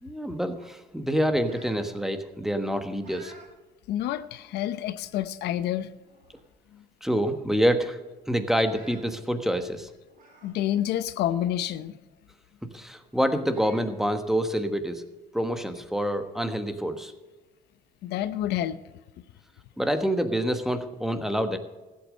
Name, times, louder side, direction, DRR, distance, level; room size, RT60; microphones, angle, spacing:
voice 1, 0.0-3.3 7.0-8.0 8.3-9.9 12.7-15.0 15.3-17.1 19.8-21.6, equal, ahead, 8 dB, 1.3 m, -27 dB
sound 1, 0.6-1.9 2.3-3.5 4.0-4.1 5.0-5.1 5.5-5.7 6.0-6.6 6.9-7.0 7.3-7.4 8.5-9.0 10.1-10.5 11.0-11.1 12.7-12.8 13.4-13.9, right 3 dB, 55° right, 5.7 m, -52 dB
voice 2, 3.9-5.9 6.7-6.8 10.4-12.0 18.0-18.8, left 12 dB, 80° left, 13 dB, 0.7 m, -28 dB
15.0 x 8.5 x 6.4 m, 1.1 s
cardioid pair, 110°, 17 cm